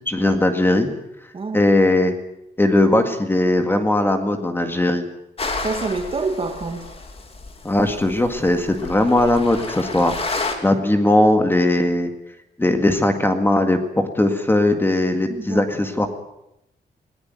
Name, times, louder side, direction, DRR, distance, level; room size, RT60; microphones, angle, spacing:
voice 1, 0.1-0.9 1.5-2.1 2.6-5.0 7.6-12.1 12.6-16.1, left 1 dB, 10° left, 1.9 m, -19 dB
voice 2, 1.3-1.7 5.6-6.9 15.3-16.1, right 3 dB, 30° right, 2.2 m, -28 dB
sound 1, 5.4-10.5, left 3 dB, 35° left, 2.8 m, -31 dB
20.0 x 18.0 x 9.3 m
wide cardioid pair, 170°, 18 cm